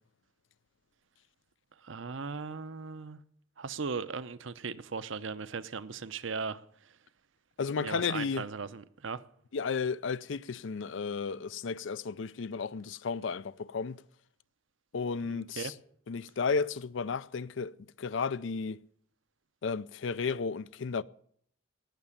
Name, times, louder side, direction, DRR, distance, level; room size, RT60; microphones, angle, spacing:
voice 1, 1.8-3.2 3.6-6.6 7.8-9.2 15.2-15.7, right 5 dB, 70° right, 0.7 m, -38 dB
voice 2, 7.6-8.4 9.5-14.0 14.9-15.7 16.1-18.8 19.6-21.0, left 5 dB, 65° left, 0.5 m, -33 dB
18.0 x 6.8 x 8.7 m
head